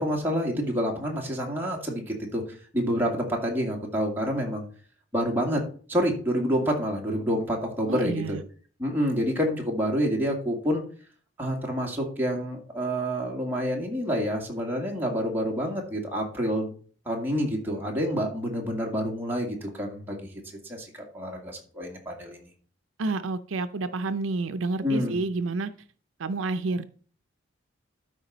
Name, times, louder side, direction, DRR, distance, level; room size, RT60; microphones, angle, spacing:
voice 1, 0.0-2.4 2.7-4.7 5.1-5.6 5.9-8.4 8.8-10.8 11.4-16.7 17.1-22.5 24.8-25.2, equal, 10° right, -1 dB, 2.0 m, -28 dB
voice 2, 7.9-8.4 23.0-25.7 26.2-26.8, right 3 dB, 80° right, 11 dB, 0.5 m, -29 dB
12.5 x 4.9 x 4.0 m, 0.43 s
head